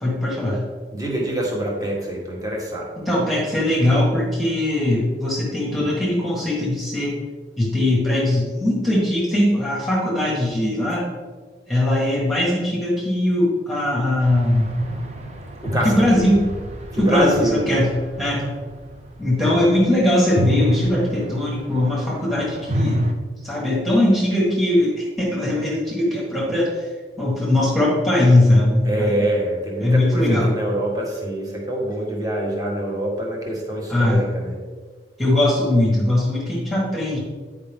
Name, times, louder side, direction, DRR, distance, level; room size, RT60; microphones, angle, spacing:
voice 1, 0.0-0.6 3.1-7.2 7.6-11.1 11.7-14.8 15.8-16.5 17.0-17.9 18.2-18.4 19.2-23.0 23.4-26.9 27.2-29.3 29.8-30.5 33.9-34.2 35.2-37.2, left 1 dB, ahead, -5 dB, 1.6 m, -20 dB
voice 2, 0.9-2.9 15.6-16.1 16.9-17.7 19.4-19.6 28.8-34.6, right 1 dB, 20° right, -3 dB, 1.6 m, -25 dB
sound 1, 14.2-19.8 20.2-23.1, equal, 40° right, 0.7 m, -27 dB
9.7 x 5.0 x 3.6 m, 1.5 s
head